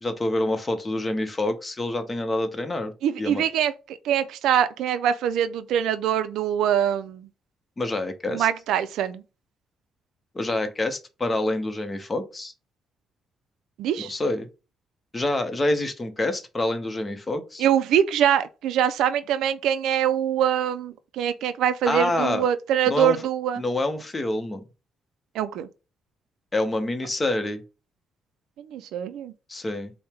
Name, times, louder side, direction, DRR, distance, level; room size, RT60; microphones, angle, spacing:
voice 1, 0.0-2.9 3.2-3.4 7.8-8.5 10.3-12.5 14.0-14.5 15.1-17.7 21.9-22.5 22.9-23.2 23.6-24.6 26.5-27.6 29.5-29.9, left 2 dB, 25° left, 0.7 m, -27 dB
voice 2, 3.0-7.3 8.3-9.2 13.8-14.1 17.6-23.6 25.3-25.7 28.7-29.3, right 9 dB, 85° right, 0.3 m, -24 dB
4.3 x 2.1 x 3.4 m
cardioid pair, 90°, 0 cm